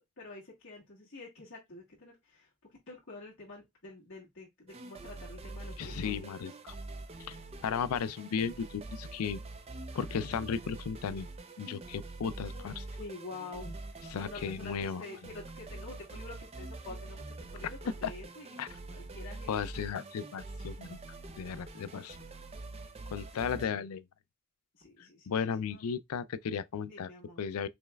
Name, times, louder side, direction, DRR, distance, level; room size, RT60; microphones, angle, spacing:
voice 1, 0.2-2.5 2.9-6.5 12.4-12.7 13.0-18.6 18.9-19.6 23.3-23.8 24.7-25.3 25.7-25.8 26.9-27.5, left 3 dB, 55° left, 1.6 m, -48 dB
sound 1, 4.7-23.7, right 2 dB, 25° right, 0.5 m, -45 dB
voice 2, 5.8-6.5 7.3-7.4 7.6-9.4 9.9-11.3 11.6-12.8 14.1-15.0 18.0-18.1 18.6-18.7 19.5-21.0 21.4-22.2 23.1-24.0 25.3-27.1 27.4-27.7, left 7 dB, 80° left, 0.4 m, -35 dB
5.2 x 3.2 x 2.3 m
head